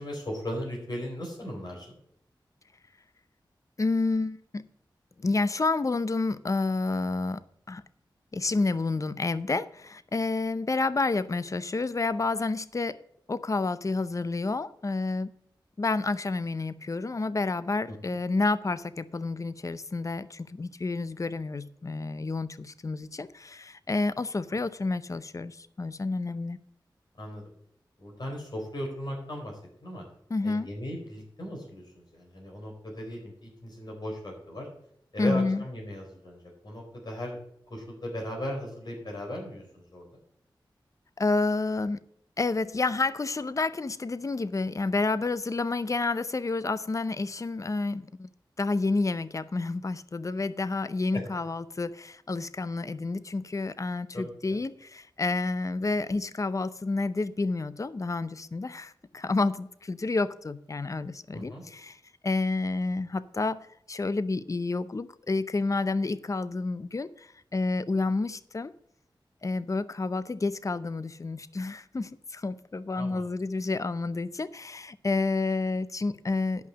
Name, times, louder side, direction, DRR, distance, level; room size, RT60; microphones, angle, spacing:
voice 1, 0.0-2.0 17.9-18.0 24.5-24.6 27.2-27.4 28.0-30.0 30.4-34.7 35.1-37.4 37.7-40.1 51.1-51.2 54.1-54.6 61.3-61.6 73.0-73.2, equal, 55° left, 4.2 m, -37 dB
voice 2, 3.8-4.7 5.2-7.4 7.7-7.8 8.3-13.0 13.3-15.3 15.8-26.6 30.3-30.7 35.2-35.6 41.2-42.0 42.4-48.3 48.6-62.0 62.2-68.7 69.4-76.7, left 3 dB, 40° left, 0.6 m, -29 dB
10.5 x 5.7 x 7.2 m
cardioid pair, 50°, 9 cm